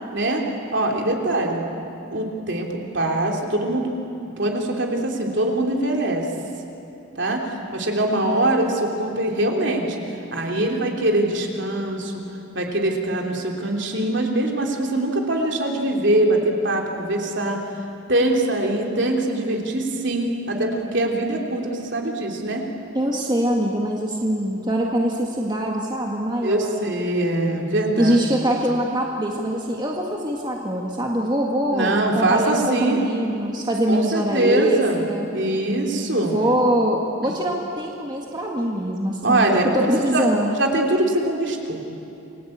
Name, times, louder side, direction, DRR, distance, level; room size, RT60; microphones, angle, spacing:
voice 1, 0.1-0.4 0.7-1.6 2.1-3.9 4.4-6.3 7.2-10.0 10.3-12.2 12.5-17.6 18.1-22.6 26.4-28.2 31.7-33.0 33.9-35.0 35.3-36.3 39.2-40.3 40.6-41.8, right 1 dB, 55° right, 1 dB, 3.4 m, -23 dB
voice 2, 22.9-27.1 28.0-35.3 36.2-39.5 39.7-40.6, right 1 dB, 20° right, -1 dB, 1.8 m, -23 dB
28.5 x 22.0 x 8.7 m, 2.8 s
head